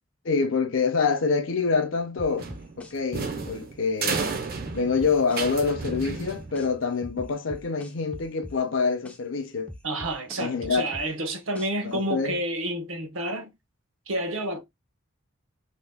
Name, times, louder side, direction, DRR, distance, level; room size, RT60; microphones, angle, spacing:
voice 1, 0.2-2.5 2.8-4.2 4.7-9.7 10.4-10.8 11.8-12.4, left 4 dB, 65° left, 0.6 m, -26 dB
sound 1, 2.2-4.2 4.7-6.7 7.0-9.2 9.7-11.9, left 1 dB, 5° left, 0.3 m, -42 dB
sound 2, 2.4-6.8, right 4 dB, 45° right, 0.5 m, -32 dB
voice 2, 9.8-13.5 14.1-14.6, right 1 dB, 75° right, 0.8 m, -29 dB
2.7 x 2.0 x 3.5 m
head